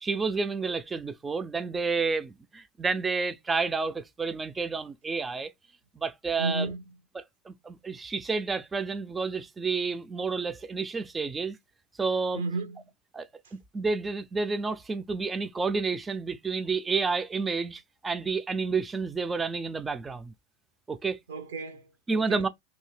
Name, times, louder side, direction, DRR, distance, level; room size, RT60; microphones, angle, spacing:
voice 1, 0.0-5.5 6.0-6.7 7.1-11.6 12.0-12.4 13.1-20.3 20.9-21.2 22.1-22.5, right 4 dB, 15° right, 0.3 m, -30 dB
voice 2, 6.4-6.8 12.3-12.8 21.3-22.4, right 3 dB, 90° right, 0.8 m, -33 dB
2.7 x 2.7 x 3.2 m
hypercardioid pair, 115°, 0 cm